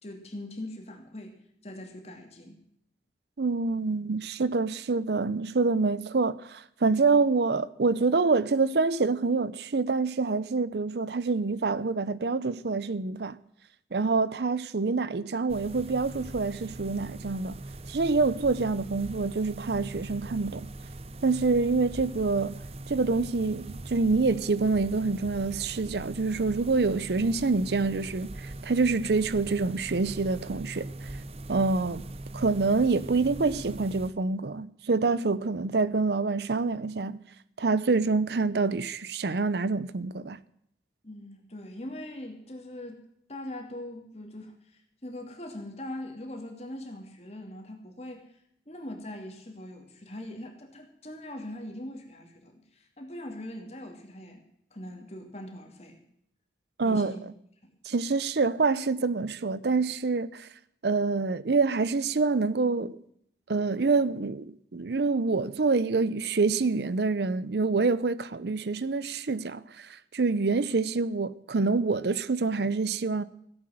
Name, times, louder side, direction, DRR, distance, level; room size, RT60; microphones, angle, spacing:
voice 1, 0.0-1.4 1.6-2.6 41.0-43.0 43.3-48.3 48.7-54.4 54.7-56.0 56.8-57.2 57.6-57.7, left 1 dB, 35° left, 2.6 m, -41 dB
voice 2, 3.4-13.4 13.9-17.6 17.9-20.7 21.2-22.6 22.9-31.1 31.5-32.0 32.3-37.2 37.6-40.4 56.8-57.1 57.8-60.5 60.8-63.0 63.5-73.2, right 4 dB, 70° right, 0.6 m, -26 dB
sound 1, 15.5-34.1, right 2 dB, 35° right, 0.7 m, -41 dB
16.5 x 8.5 x 7.7 m
head